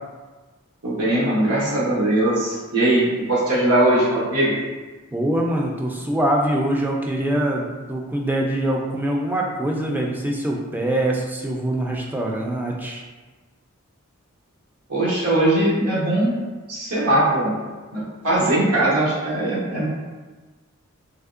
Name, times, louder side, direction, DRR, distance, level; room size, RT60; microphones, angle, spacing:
voice 1, 0.8-4.5 14.9-16.3 16.7-17.5 17.9-19.9, right 1 dB, 85° right, -7 dB, 1.0 m, -20 dB
voice 2, 5.1-13.0, right 1 dB, 10° right, -1 dB, 0.3 m, -24 dB
3.4 x 2.9 x 2.5 m, 1.3 s
head